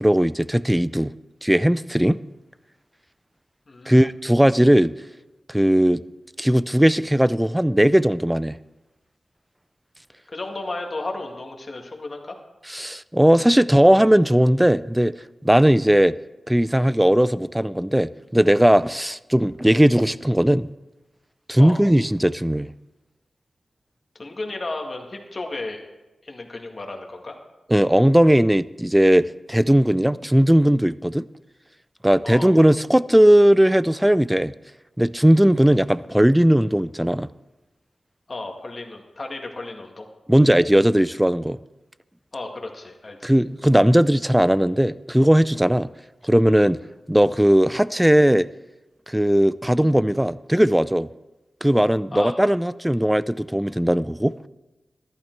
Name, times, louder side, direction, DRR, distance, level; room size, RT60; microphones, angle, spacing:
voice 1, 0.0-1.1 1.4-2.2 3.9-4.9 5.5-6.0 6.4-8.6 12.7-15.1 15.4-16.1 16.5-20.7 21.5-22.7 27.7-31.2 32.0-34.5 35.0-37.3 40.3-41.6 43.2-45.9 46.2-46.8 47.1-48.5 49.1-51.1 51.6-54.3, equal, 5° right, 17 dB, 0.4 m, -18 dB
voice 2, 3.7-4.0 10.3-12.4 21.6-21.8 24.2-25.8 26.2-27.4 32.2-32.5 38.3-40.1 42.3-43.3 52.1-52.3, left 2 dB, 40° left, 2 dB, 1.9 m, -33 dB
14.0 x 11.5 x 4.6 m, 1.1 s
wide cardioid pair, 95°, 0 cm